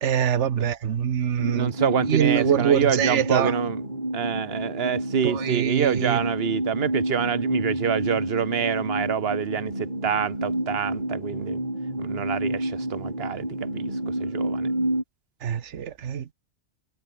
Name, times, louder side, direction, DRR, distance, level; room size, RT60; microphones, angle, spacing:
voice 1, 0.0-1.7 2.1-3.6 5.2-6.2 15.4-16.3, right 8 dB, 70° right, 1.3 m, -24 dB
sound 1, 1.4-15.0, right 1 dB, 35° right, 6.2 m, -29 dB
voice 2, 1.5-3.8 4.1-11.6 12.0-13.9 14.2-14.7, right 8 dB, 55° right, 1.2 m, -27 dB
omnidirectional pair, 1.2 m